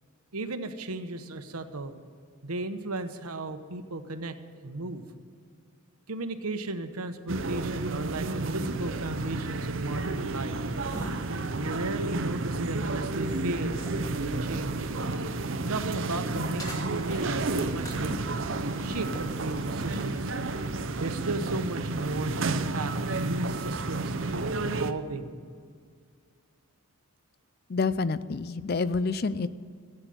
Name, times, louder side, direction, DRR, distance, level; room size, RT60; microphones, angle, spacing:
voice 1, 0.3-1.9 2.4-4.3 4.6-5.0 6.1-10.5 11.6-14.9 15.7-18.2 18.6-20.3 21.0-25.3, right 2 dB, 90° right, 9 dB, 1.0 m, -35 dB
sound 1, 7.3-24.9, right 3 dB, 60° right, 0.7 m, -31 dB
sound 2, 10.8-15.4 15.7-20.4, right 1 dB, 15° left, 2.1 m, -44 dB
voice 2, 27.7-29.5, left 4 dB, 45° left, 15 dB, 0.4 m, -28 dB
14.0 x 9.0 x 7.8 m, 2.1 s
head